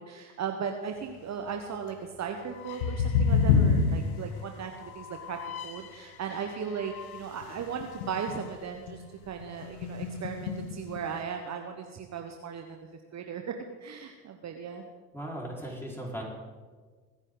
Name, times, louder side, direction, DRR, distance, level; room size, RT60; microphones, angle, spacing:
voice 1, 0.0-5.4 5.6-12.8 13.1-13.4 13.8-14.9, right 7 dB, 40° right, 4 dB, 1.3 m, -37 dB
sound 1, 2.6-5.9 6.3-8.6 8.9-9.1 9.4-11.1, left 5 dB, 75° left, 1.2 m, -29 dB
voice 2, 15.1-16.2, right 1 dB, 5° left, -3 dB, 4.9 m, -37 dB
22.5 x 9.8 x 4.0 m, 1.5 s
hypercardioid pair, 65°, 43 cm